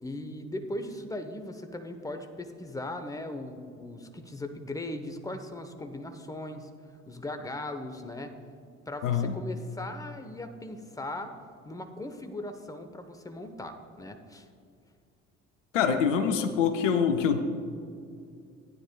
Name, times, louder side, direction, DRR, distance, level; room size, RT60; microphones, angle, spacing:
voice 1, 0.0-6.7 7.1-8.4 8.9-11.3 11.6-14.5, left 1 dB, 10° left, 7 dB, 1.0 m, -38 dB
voice 2, 9.0-9.4 15.7-17.4, left 7 dB, 80° left, 8 dB, 0.7 m, -25 dB
15.5 x 9.6 x 2.3 m, 2.4 s
figure-of-eight pair, 50°, 37 cm